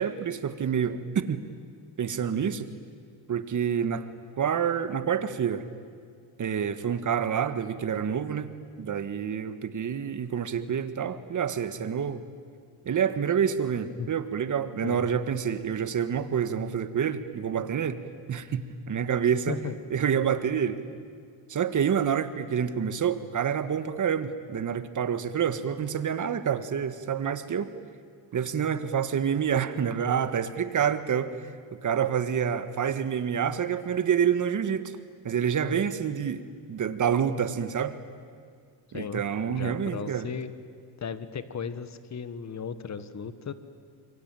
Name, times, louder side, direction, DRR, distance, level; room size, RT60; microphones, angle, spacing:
voice 1, 0.0-1.4 2.0-2.7 3.3-4.1 4.4-5.6 6.4-12.2 12.8-18.0 18.3-19.6 19.9-20.8 21.5-27.7 28.3-31.4 31.7-34.9 35.2-36.4 36.7-37.9 38.9-40.3, right 8 dB, 45° right, 11 dB, 1.7 m, -28 dB
voice 2, 14.8-15.2 19.5-19.7 38.9-39.2 39.5-40.5 41.0-43.5, left 6 dB, 40° left, 12 dB, 1.6 m, -36 dB
27.5 x 23.0 x 9.1 m, 2.1 s
cardioid pair, 105°, 43 cm